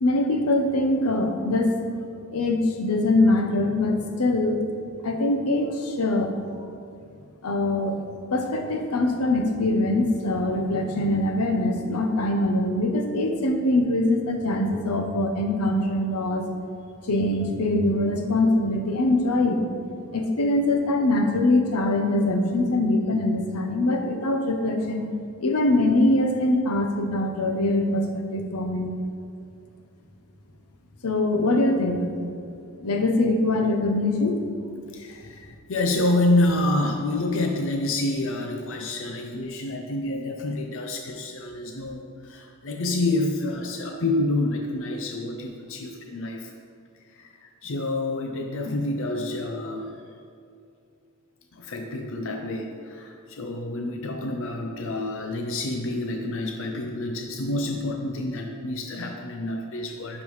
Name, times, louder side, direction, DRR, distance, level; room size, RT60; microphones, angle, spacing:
voice 1, 0.0-1.8 2.3-4.6 5.0-6.3 7.4-8.0 8.3-16.4 17.1-19.6 20.1-25.1 25.4-28.9 31.0-32.1 32.8-34.4, left 2 dB, 90° left, 4 dB, 0.8 m, -23 dB
voice 2, 34.9-46.5 47.1-50.0 51.5-60.2, left 2 dB, 60° left, 3 dB, 0.5 m, -28 dB
10.5 x 5.3 x 3.2 m, 2.5 s
head